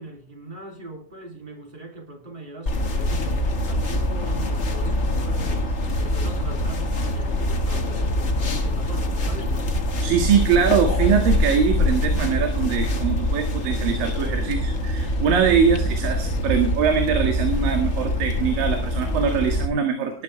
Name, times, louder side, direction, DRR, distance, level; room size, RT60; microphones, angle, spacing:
voice 1, 0.0-5.7 6.0-9.7, right 2 dB, 15° right, 2.7 m, -40 dB
sound 1, 2.7-19.6, left 1 dB, 65° left, 0.6 m, -24 dB
voice 2, 10.0-20.2, right 7 dB, 70° right, 3.5 m, -22 dB
19.5 x 11.5 x 3.3 m
omnidirectional pair, 4.2 m